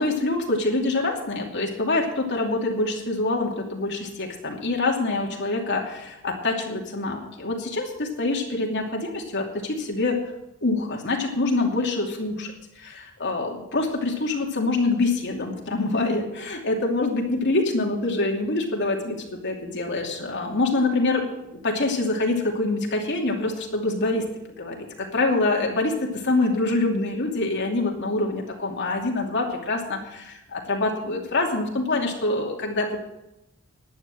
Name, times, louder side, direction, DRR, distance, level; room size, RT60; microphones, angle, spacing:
voice 1, 0.0-10.2 10.6-21.3 21.5-24.3 24.6-33.0, left 2 dB, 55° left, 0 dB, 2.8 m, -25 dB
11.5 x 10.5 x 7.7 m, 0.90 s
head